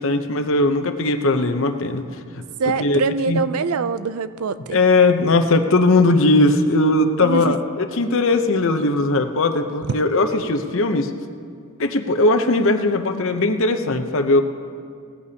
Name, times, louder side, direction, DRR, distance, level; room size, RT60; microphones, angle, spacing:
voice 1, 0.0-2.1 2.8-3.4 4.7-11.1 11.8-14.4, left 2 dB, 65° left, 7 dB, 0.8 m, -19 dB
voice 2, 2.6-4.8 7.2-7.6, right 4 dB, 80° right, 13 dB, 0.5 m, -24 dB
19.0 x 14.5 x 2.9 m, 2.2 s
head